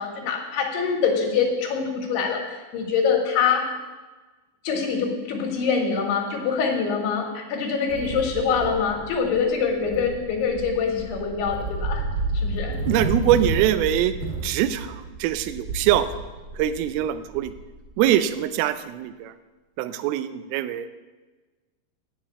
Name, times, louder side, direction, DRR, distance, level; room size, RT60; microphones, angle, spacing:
voice 1, 0.0-3.6 4.6-12.0 12.3-12.8, left 6 dB, 80° left, 2 dB, 3.6 m, -24 dB
sound 1, 7.9-18.1, right 2 dB, 30° right, 2.9 m, -31 dB
voice 2, 12.9-14.1 14.4-16.1 16.6-17.5 18.0-19.3 19.8-20.9, right 12 dB, 80° right, 12 dB, 2.4 m, -23 dB
8.8 x 7.6 x 8.3 m, 1.3 s
omnidirectional pair, 4.7 m